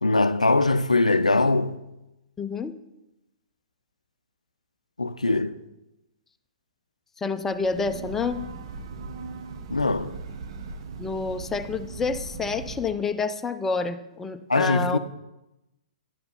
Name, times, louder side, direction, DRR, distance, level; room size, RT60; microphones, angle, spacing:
voice 1, 0.0-1.8 5.0-5.6 9.7-10.2 14.5-15.0, left 2 dB, 85° left, 0.4 m, -22 dB
voice 2, 2.4-2.7 7.2-8.4 11.0-15.0, left 4 dB, 10° left, 0.5 m, -28 dB
Breathing / Train, 7.5-13.0, right 4 dB, 45° right, 0.7 m, -39 dB
10.0 x 5.8 x 5.4 m
figure-of-eight pair, 115°, 4 cm